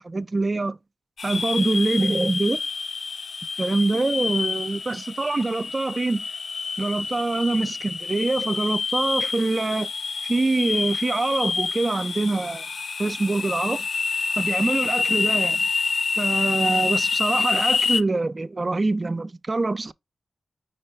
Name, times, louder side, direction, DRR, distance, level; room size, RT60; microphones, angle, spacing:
voice 1, 0.0-0.8 1.2-2.6 3.6-6.2 6.8-9.9 10.2-12.7 13.0-13.9 14.4-15.7 16.2-19.9, right 3 dB, 35° right, 0.3 m, -24 dB
sound 1, 1.2-18.0, left 5 dB, 65° left, 0.3 m, -27 dB
5.4 x 2.2 x 4.4 m
cardioid pair, 60°, 0 cm